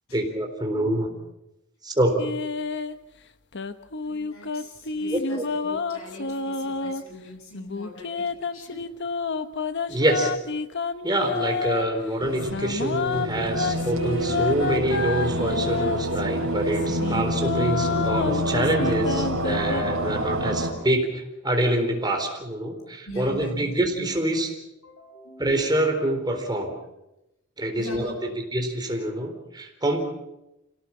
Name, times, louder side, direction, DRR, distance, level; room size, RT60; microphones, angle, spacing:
voice 1, 0.1-1.1 1.8-2.3 5.1-5.4 9.9-10.3 11.0-24.5 25.4-26.7 27.6-30.0, right 1 dB, 20° right, 3 dB, 4.0 m, -26 dB
sound 1, 2.2-2.9 3.5-7.0 7.5-11.8 12.4-16.2 16.7-19.8, left 4 dB, 55° left, 1.1 m, -29 dB
voice 2, 4.0-8.8 11.4-11.5 23.1-24.1 24.8-25.7 27.8-28.2, left 1 dB, 75° left, 3 dB, 7.1 m, -41 dB
sound 2, 12.2-20.7, equal, 70° right, 4.6 m, -27 dB
27.0 x 17.5 x 7.5 m, 0.91 s
head